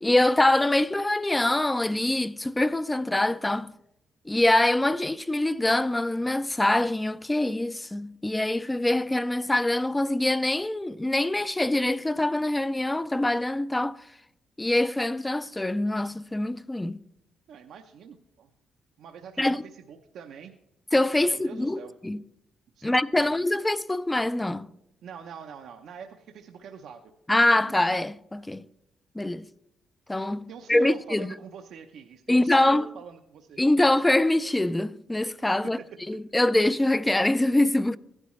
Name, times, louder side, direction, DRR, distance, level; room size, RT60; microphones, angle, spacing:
voice 1, 0.0-3.7 4.3-14.0 14.6-17.0 19.4-19.6 20.9-22.2 22.8-24.7 27.3-28.6 29.2-29.5 30.1-31.3 32.3-32.9 33.6-35.8 36.1-38.0, left 1 dB, 10° left, 0.4 m, -24 dB
voice 2, 17.5-18.5 19.0-20.5 21.2-21.9 22.7-23.3 25.0-27.0 30.3-33.6 35.6-35.9, right 7 dB, 75° right, 0.7 m, -43 dB
16.0 x 11.0 x 3.1 m
cardioid pair, 90°, 0 cm